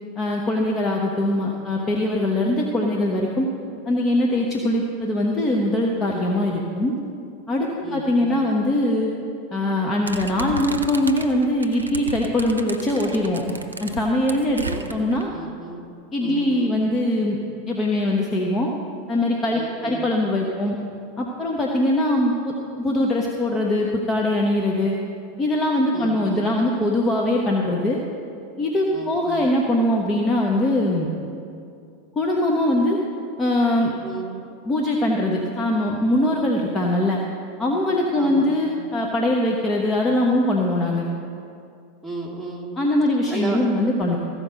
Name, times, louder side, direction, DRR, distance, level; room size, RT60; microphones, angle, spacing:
voice 1, 0.2-3.5 3.9-7.0 7.5-9.1 9.5-14.6 14.9-15.3 16.1-17.4 17.7-18.7 19.1-20.8 21.2-24.9 25.4-28.0 28.6-31.1 32.1-33.0 33.4-33.9 34.6-37.2 37.6-41.1 42.8-44.2, left 1 dB, 25° left, -1 dB, 1.1 m, -22 dB
voice 2, 7.8-8.5 14.6-15.0 15.3-15.9 16.2-16.8 19.5-20.1 25.9-26.5 28.9-29.5 34.0-34.4 38.2-38.8 42.0-42.7 43.3-43.7, right 3 dB, 5° left, -3 dB, 2.4 m, -34 dB
sound 1, 10.1-15.2, right 3 dB, 90° right, 0.6 m, -34 dB
15.0 x 5.2 x 6.3 m, 2.5 s
figure-of-eight pair, 90°, 0 cm